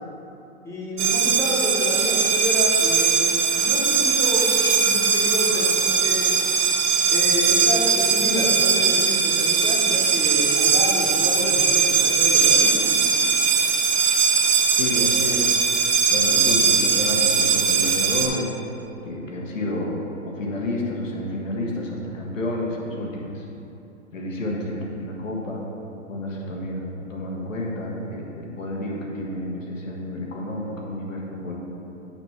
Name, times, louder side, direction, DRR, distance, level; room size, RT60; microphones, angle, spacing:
voice 1, 0.6-6.3 7.1-12.9, left 1 dB, 5° left, -5 dB, 1.0 m, -29 dB
sound 1, 1.0-18.3, right 6 dB, 25° right, 0.5 m, -20 dB
voice 2, 14.8-15.5 16.1-18.5 19.1-19.9 20.2-23.4 24.1-25.6 26.1-31.6, left 1 dB, 85° left, -2 dB, 1.6 m, -30 dB
8.6 x 3.2 x 6.0 m, 2.8 s
hypercardioid pair, 140°, 38 cm